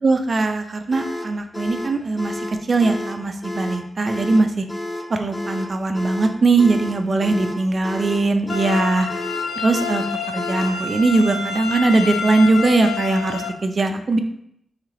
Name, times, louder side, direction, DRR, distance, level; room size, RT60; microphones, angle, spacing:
voice 1, 0.0-4.6 5.1-9.1 9.6-14.2, right 3 dB, 50° right, 6 dB, 0.5 m, -20 dB
sound 1, 0.9-10.8, left 1 dB, 20° left, 0.5 m, -31 dB
sound 2, 8.5-13.5, left 6 dB, 80° left, 0.4 m, -28 dB
3.2 x 3.2 x 3.8 m, 0.74 s
cardioid pair, 55°, 0 cm